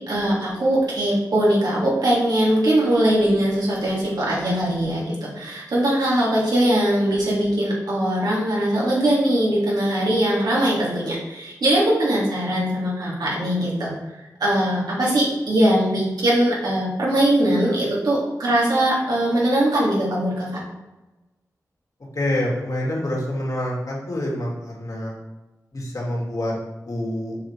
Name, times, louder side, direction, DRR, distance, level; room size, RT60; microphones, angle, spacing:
voice 1, 0.1-13.9 14.4-20.6, right 1 dB, 85° right, -5 dB, 2.7 m, -21 dB
voice 2, 22.1-25.1 25.7-26.5 26.9-27.4, left 1 dB, 60° left, -3 dB, 2.6 m, -26 dB
6.9 x 5.2 x 4.8 m, 1.1 s
cardioid pair, 50°, 7 cm